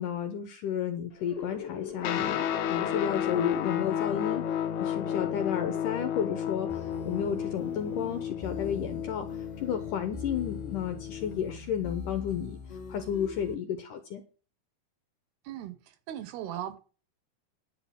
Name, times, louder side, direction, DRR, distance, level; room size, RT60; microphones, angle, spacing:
voice 1, 0.0-4.5 4.8-12.6 12.9-14.2, left 8 dB, 70° left, 2.1 m, -32 dB
sound 1, 1.1-8.4, left 7 dB, 35° left, 1.9 m, -42 dB
Guitar, 2.0-11.6, left 9 dB, 85° left, 1.6 m, -33 dB
sound 2, 6.7-13.5, left 3 dB, 15° left, 1.4 m, -43 dB
voice 2, 15.4-16.8, right 11 dB, 75° right, 2.8 m, -38 dB
10.5 x 5.3 x 8.5 m
omnidirectional pair, 4.9 m